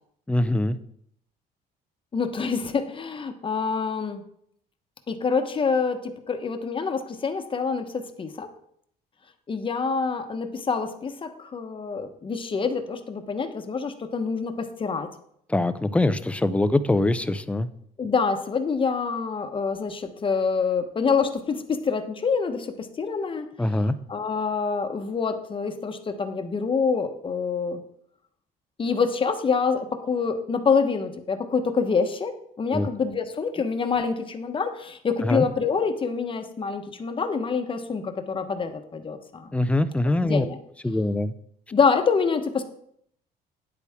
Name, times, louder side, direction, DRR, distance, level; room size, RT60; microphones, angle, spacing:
voice 1, 0.3-0.8 15.5-17.7 23.6-23.9 32.7-32.9 35.2-35.4 39.5-40.5 40.8-41.3, left 2 dB, 5° left, 13 dB, 0.5 m, -23 dB
voice 2, 2.1-4.2 5.1-8.5 9.5-15.1 18.0-23.5 23.7-27.8 28.8-39.5 40.2-40.6 41.7-42.6, left 5 dB, 30° left, 7 dB, 1.1 m, -26 dB
9.9 x 8.2 x 3.6 m, 0.69 s
cardioid pair, 110°, 17 cm